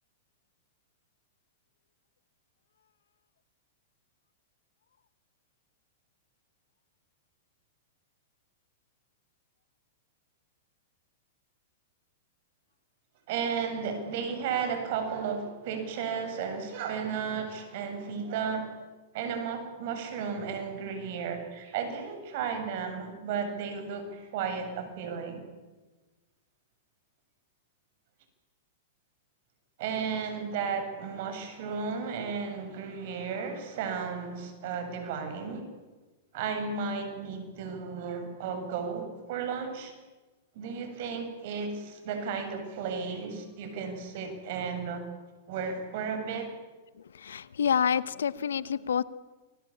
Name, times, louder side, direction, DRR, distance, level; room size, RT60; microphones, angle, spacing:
voice 1, 13.3-18.8 19.1-25.4 29.8-35.7 36.3-39.9 40.5-45.1 45.5-46.5, right 6 dB, 60° right, 7 dB, 7.7 m, -34 dB
voice 2, 47.3-49.0, left 7 dB, 85° left, 18 dB, 1.1 m, -27 dB
29.0 x 22.0 x 8.7 m, 1.2 s
hypercardioid pair, 115°, 0 cm